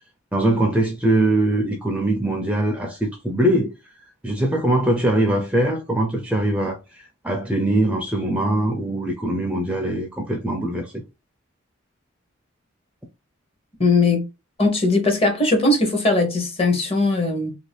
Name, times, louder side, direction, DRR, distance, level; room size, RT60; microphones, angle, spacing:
voice 1, 0.3-3.7 4.2-11.0, right 1 dB, 5° right, 0.4 m, -22 dB
voice 2, 13.8-14.3 14.6-17.5, left 2 dB, 25° left, 0.8 m, -19 dB
2.8 x 2.6 x 3.2 m
head